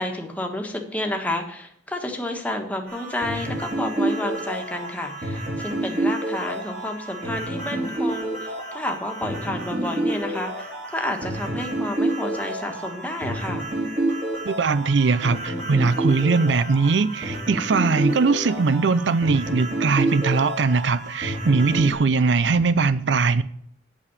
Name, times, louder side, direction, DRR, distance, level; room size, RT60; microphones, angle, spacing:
voice 1, 0.0-13.7, left 1 dB, 10° left, 1.5 m, -30 dB
sound 1, 2.9-21.9, right 1 dB, 45° right, 4.7 m, -29 dB
voice 2, 14.5-23.4, right 4 dB, 80° right, 0.5 m, -20 dB
8.5 x 6.9 x 8.4 m
head